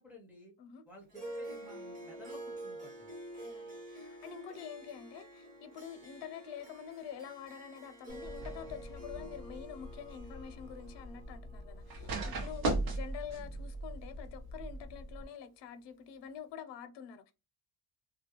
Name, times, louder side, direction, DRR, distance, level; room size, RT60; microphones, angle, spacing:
voice 1, 0.0-0.5 0.9-3.1, left 1 dB, 5° right, 0.4 m, -54 dB
Harp, 1.1-13.7, right 1 dB, 40° right, 1.0 m, -48 dB
voice 2, 3.4-17.3, left 8 dB, 85° left, 0.6 m, -47 dB
sound 1, 8.1-15.2, right 2 dB, 60° right, 0.7 m, -39 dB
2.3 x 2.1 x 2.8 m
cardioid pair, 170°, 41 cm